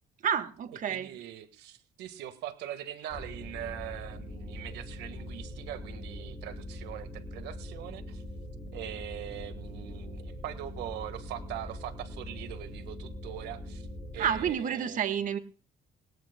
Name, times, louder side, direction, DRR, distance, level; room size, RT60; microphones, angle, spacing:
voice 1, 0.2-1.1 14.2-15.4, right 8 dB, 50° right, 10 dB, 1.5 m, -29 dB
voice 2, 0.9-8.2 8.7-13.9 14.1-15.0, right 12 dB, 85° right, 10 dB, 1.6 m, -42 dB
sound 1, 3.1-14.5, left 1 dB, 20° left, 6.5 m, -42 dB
20.0 x 19.0 x 2.2 m, 0.37 s
cardioid pair, 110°, 17 cm